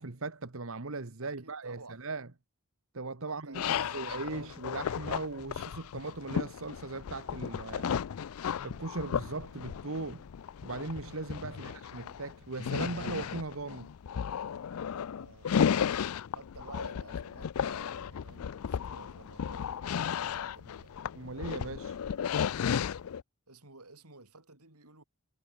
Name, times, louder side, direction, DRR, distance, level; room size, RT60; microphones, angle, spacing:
voice 1, 0.0-2.3 2.9-10.3 10.6-13.9 21.1-22.0, right 3 dB, 60° right, 1.3 m, -39 dB
voice 2, 1.2-2.0 3.3-4.6 11.5-11.8 15.2-15.5 16.3-20.9 23.5-25.0, right 3 dB, 85° right, 6.5 m, -52 dB
sound 1, 3.5-23.2, left 7 dB, 75° left, 0.4 m, -34 dB
head